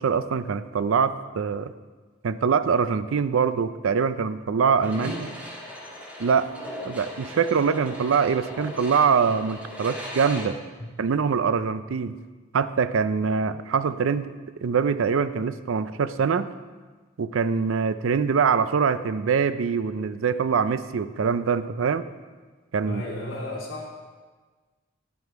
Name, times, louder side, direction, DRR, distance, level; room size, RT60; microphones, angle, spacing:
voice 1, 0.0-1.7 2.2-5.3 6.2-6.5 6.9-10.6 11.0-12.1 12.5-14.3 14.6-16.5 17.2-22.0 22.7-23.0, right 6 dB, 70° right, 13 dB, 0.4 m, -24 dB
sound 1, 4.8-10.4, left 1 dB, 5° right, 1.5 m, -38 dB
voice 2, 4.9-5.3 10.8-10.9 22.8-23.9, left 1 dB, 65° left, -6 dB, 3.1 m, -34 dB
9.9 x 8.1 x 4.6 m, 1.4 s
head